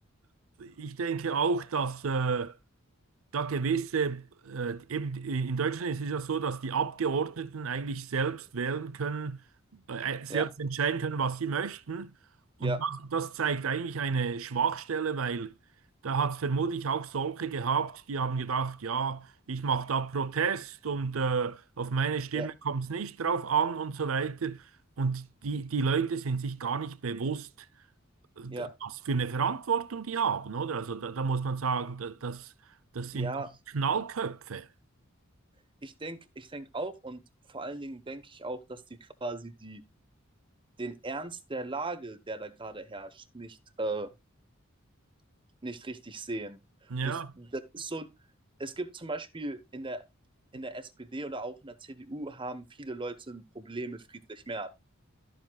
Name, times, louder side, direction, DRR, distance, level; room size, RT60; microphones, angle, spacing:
voice 1, 0.6-2.6 3.3-9.4 9.7-12.1 12.6-15.5 16.0-24.6 25.0-27.5 28.4-32.5 32.9-33.4 33.7-34.7 46.9-47.3, right 5 dB, 80° right, 0.6 m, -31 dB
voice 2, 33.1-33.5 35.8-37.2 37.5-39.8 40.8-44.1 45.6-46.6 47.0-48.1 48.6-50.0 50.5-54.7, right 2 dB, 25° right, 1.1 m, -38 dB
13.0 x 7.6 x 2.3 m
head